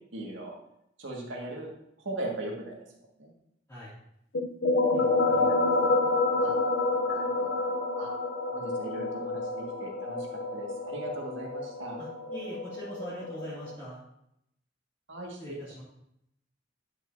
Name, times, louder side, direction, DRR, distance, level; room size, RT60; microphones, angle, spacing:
voice 1, 0.1-0.5 1.0-1.7 2.0-2.8 3.2-3.3 5.5-5.6 6.4-6.6 7.1-8.1 8.5-10.3 10.5-12.0 15.1-15.6, right 1 dB, 75° right, -1 dB, 1.9 m, -39 dB
sound 1, 4.3-13.7, left 2 dB, 75° left, 0.7 m, -28 dB
voice 2, 4.9-5.6 12.0-14.0 15.4-15.8, equal, 15° left, -11 dB, 2.3 m, -42 dB
10.0 x 6.4 x 2.7 m, 0.77 s
head